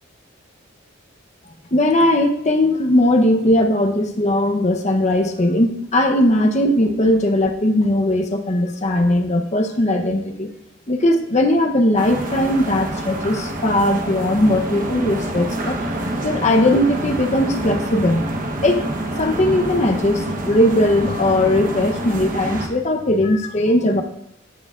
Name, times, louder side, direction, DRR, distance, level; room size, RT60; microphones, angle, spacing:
voice 1, 1.7-10.5 10.9-15.8 16.2-18.3 18.6-18.9 19.2-24.0, left 1 dB, 35° left, 4 dB, 0.8 m, -18 dB
sound 1, 12.0-22.7, right 1 dB, 40° right, 1.0 m, -27 dB
14.0 x 6.7 x 2.4 m, 0.80 s
head